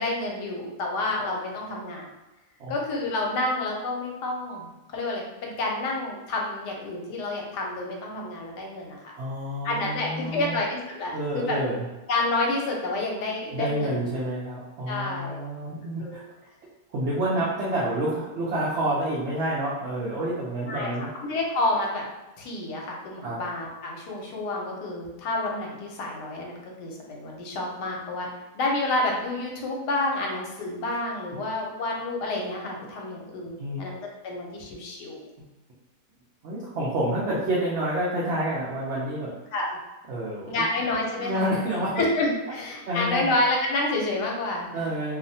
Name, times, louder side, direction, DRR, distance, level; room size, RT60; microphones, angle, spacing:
voice 1, 0.0-2.1 2.7-9.2 9.6-11.6 12.1-14.1 14.9-15.4 16.0-16.2 17.3-17.4 20.7-20.9 21.2-22.0 22.4-28.3 28.5-35.3 39.5-39.8 40.5-41.5 42.0-44.7, left 2 dB, 80° left, -1 dB, 1.2 m, -29 dB
voice 2, 9.2-10.6 11.1-11.9 13.5-16.2 16.9-21.1 23.2-23.4 31.3-31.4 33.6-33.9 36.4-39.3 40.1-40.7 41.2-41.9 42.9-43.3 44.7-45.2, right 1 dB, 75° right, -7 dB, 0.6 m, -28 dB
2.7 x 2.1 x 2.6 m, 1.0 s
omnidirectional pair, 1.8 m